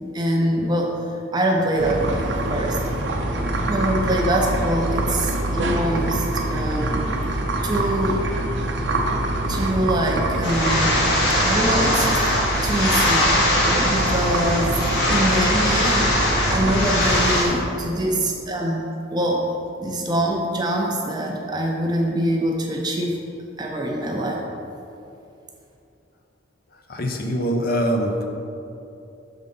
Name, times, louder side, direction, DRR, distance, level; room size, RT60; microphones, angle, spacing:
voice 1, 0.1-0.9 1.3-2.8 3.6-6.2 6.5-7.1 7.6-8.2 9.5-11.1 11.4-13.3 13.6-19.4 19.8-23.2 23.6-24.4, right 1 dB, 20° right, 0 dB, 0.6 m, -24 dB
sound 1, 1.8-17.4, right 1 dB, 70° right, 0.7 m, -25 dB
sound 2, 10.4-17.4, left 1 dB, 65° left, 1.3 m, -21 dB
voice 2, 26.7-28.3, equal, 50° left, 2 dB, 0.6 m, -25 dB
6.5 x 3.9 x 5.4 m, 2.7 s
head